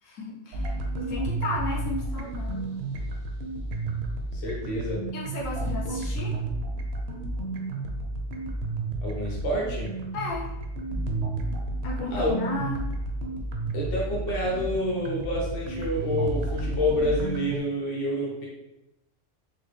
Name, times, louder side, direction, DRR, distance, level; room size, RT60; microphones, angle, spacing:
voice 1, 0.0-2.8 5.1-6.4 10.1-10.5 11.8-12.9, left 3 dB, 85° left, -3 dB, 1.1 m, -34 dB
sound 1, 0.5-17.6, right 2 dB, 65° right, 0.8 m, -31 dB
voice 2, 4.3-5.0 9.0-9.9 12.1-12.3 13.7-18.5, left 1 dB, 50° left, -2 dB, 1.1 m, -28 dB
4.0 x 2.3 x 3.1 m, 0.89 s
omnidirectional pair, 1.3 m